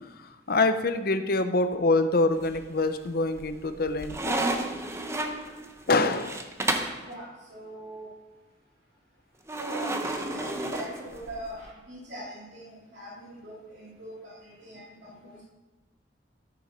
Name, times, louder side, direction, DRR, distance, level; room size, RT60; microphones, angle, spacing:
voice 1, 0.5-4.4 5.9-6.4 15.3-15.5, left 2 dB, 55° left, 9 dB, 0.8 m, -25 dB
sound 1, 2.4-2.9 3.4-7.0 9.5-11.5, right 2 dB, 15° right, 0.9 m, -32 dB
voice 2, 7.0-8.1 9.5-15.5, equal, 75° right, -7 dB, 3.0 m, -41 dB
13.5 x 7.0 x 5.2 m, 1.2 s
head